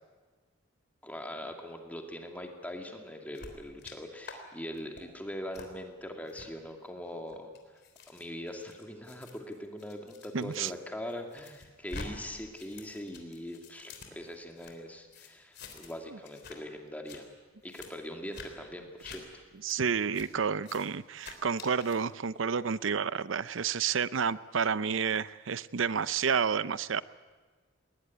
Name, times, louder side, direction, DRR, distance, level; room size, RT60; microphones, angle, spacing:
voice 1, 1.0-7.5 8.1-17.2 17.6-19.4, equal, 10° left, 3 dB, 2.3 m, -42 dB
sound 1, 3.3-3.9 4.2-4.4 4.7-5.0 5.5-5.7 6.3-6.5 7.1-10.7 11.1-12.1 12.4-14.7 15.1-16.0 16.2-16.6 16.9-17.2 17.7-17.9 18.3-18.5 19.0-19.2 19.7-19.8 20.1-20.3 20.6-20.9 21.2-22.0, left 4 dB, 55° left, 3.5 m, -47 dB
voice 2, 10.3-10.7 19.6-27.0, right 6 dB, 75° right, 17 dB, 0.6 m, -30 dB
20.0 x 20.0 x 9.6 m, 1.4 s
head